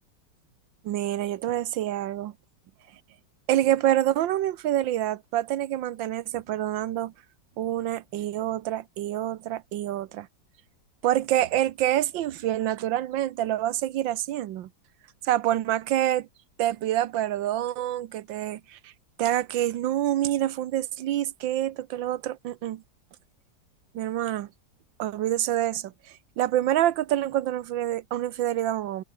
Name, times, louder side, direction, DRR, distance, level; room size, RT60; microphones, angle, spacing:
voice 1, 0.8-2.3 3.5-7.1 7.6-10.3 11.0-14.7 15.2-16.3 16.6-18.9 19.2-22.8 23.9-24.5 25.0-25.9 26.4-29.0, right 13 dB, 85° right, 1.6 m, -27 dB
omnidirectional pair, 2.0 m